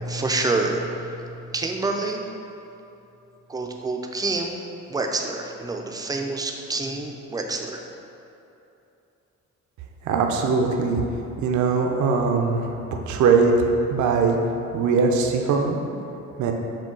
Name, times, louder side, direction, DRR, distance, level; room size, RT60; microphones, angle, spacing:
voice 1, 0.0-2.2 3.5-4.6 4.9-7.8, right 3 dB, 15° right, 2 dB, 0.4 m, -27 dB
voice 2, 10.1-11.0 11.4-12.7 13.1-14.4 14.7-15.8 16.4-16.5, right 4 dB, 75° right, 3 dB, 0.5 m, -21 dB
6.2 x 2.3 x 3.7 m, 2.9 s
cardioid pair, 90°, 30 cm